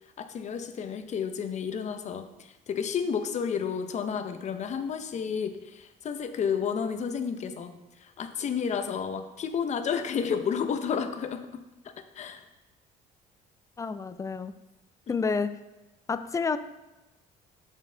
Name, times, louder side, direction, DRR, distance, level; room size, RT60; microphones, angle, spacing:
voice 1, 0.2-7.7 8.0-11.5 12.2-12.4 15.1-15.2, left 7 dB, 45° left, 8 dB, 0.7 m, -31 dB
voice 2, 13.8-14.5 15.1-15.5 16.1-16.6, left 5 dB, 20° left, 12 dB, 0.3 m, -29 dB
7.3 x 5.4 x 3.8 m, 1.0 s
cardioid pair, 110°, 17 cm